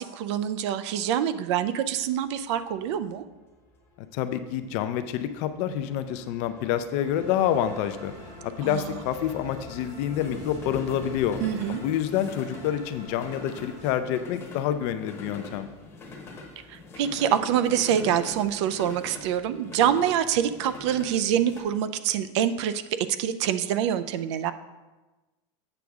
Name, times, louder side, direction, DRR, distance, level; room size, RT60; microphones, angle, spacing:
voice 1, 0.0-3.2 8.6-9.0 11.4-11.8 16.7-24.5, right 9 dB, 65° right, 12 dB, 0.5 m, -26 dB
sound 1, 2.1-21.6, left 2 dB, 15° left, 1.0 m, -44 dB
voice 2, 4.1-8.1 8.4-11.4 11.7-15.7, left 10 dB, 45° left, 10 dB, 0.5 m, -28 dB
sound 2, 7.0-13.9, equal, 80° right, 2.7 m, -46 dB
7.9 x 6.0 x 3.5 m, 1.2 s
supercardioid pair, 170°, 16 cm